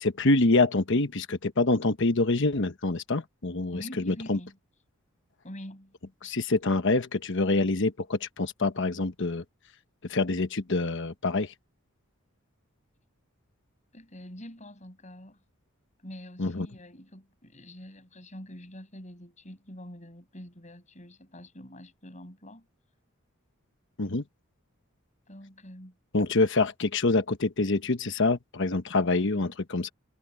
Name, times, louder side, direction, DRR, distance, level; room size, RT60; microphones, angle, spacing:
voice 1, 0.0-4.4 6.2-9.4 10.1-11.5 16.4-16.7 24.0-24.2 26.1-29.9, left 3 dB, 60° left, 1.1 m, -26 dB
voice 2, 3.7-4.6 5.4-5.9 13.9-15.4 16.0-22.7 25.3-25.9, equal, 35° left, 6.7 m, -45 dB
head